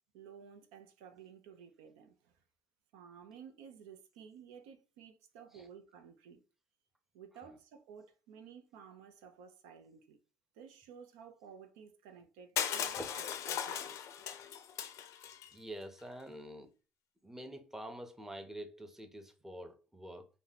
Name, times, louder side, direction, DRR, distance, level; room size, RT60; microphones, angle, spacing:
voice 1, 0.1-2.3 2.9-6.4 7.1-10.2 10.5-14.0, right 7 dB, 85° right, 0.6 m, -54 dB
Crushing, 12.6-15.5, left 9 dB, 65° left, 0.4 m, -38 dB
voice 2, 15.5-16.7 17.2-20.3, equal, 5° right, 0.7 m, -46 dB
2.8 x 2.2 x 4.0 m
supercardioid pair, 80°, 6 cm